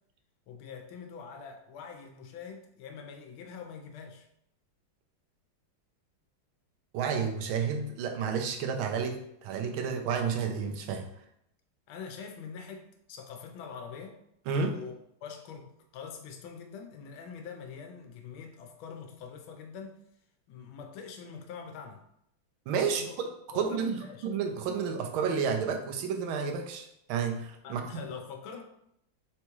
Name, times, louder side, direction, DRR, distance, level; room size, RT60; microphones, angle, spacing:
voice 1, 0.5-4.3 11.9-14.2 14.7-14.9 15.2-20.0 20.5-22.0 22.8-23.2 23.5-24.3 27.6-28.6, left 6 dB, 90° left, 3 dB, 1.4 m, -44 dB
voice 2, 6.9-11.0 14.5-14.8 22.7-23.0 23.5-28.0, right 6 dB, 85° right, 4 dB, 1.4 m, -31 dB
4.1 x 3.4 x 3.0 m, 0.75 s
omnidirectional pair, 2.2 m